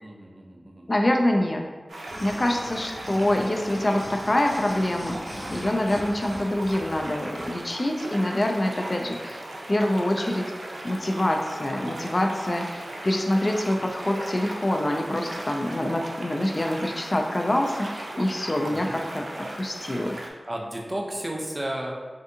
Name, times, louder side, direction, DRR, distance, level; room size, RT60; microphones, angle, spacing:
voice 1, 0.0-0.9 18.6-19.0 20.5-21.9, right 1 dB, 35° right, 0 dB, 0.6 m, -33 dB
voice 2, 0.9-1.6 2.2-10.5 10.8-20.2, left 1 dB, 45° left, 3 dB, 0.3 m, -25 dB
sound 1, 1.9-20.3, right 1 dB, 90° right, 0.4 m, -37 dB
sound 2, 2.1-7.6 8.1-8.2, equal, 65° left, 1.1 m, -41 dB
3.5 x 2.5 x 2.6 m, 1.4 s
cardioid pair, 40°, 0 cm